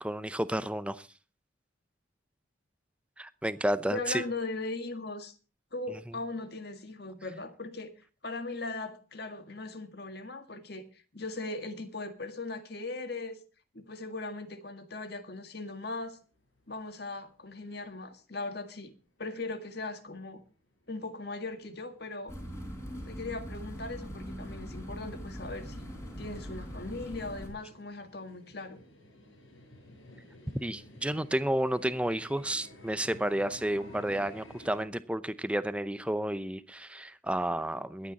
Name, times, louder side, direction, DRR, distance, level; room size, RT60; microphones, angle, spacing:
voice 1, 0.0-1.1 3.2-4.2 30.6-38.1, right 1 dB, 5° right, 0.6 m, -31 dB
voice 2, 3.9-5.3 5.7-7.9 8.2-10.8 11.1-13.4 13.7-16.2 16.7-18.9 19.2-20.4 20.9-22.3 23.1-25.9 26.2-28.8, left 2 dB, 55° left, 1.8 m, -39 dB
sound 1, 16.0-18.1 18.4-18.5 19.0-19.1 19.4-19.5 19.8-34.9, equal, 90° left, 6.2 m, -54 dB
sound 2, 22.3-27.5, equal, 15° left, 3.7 m, -41 dB
21.5 x 9.0 x 4.1 m
head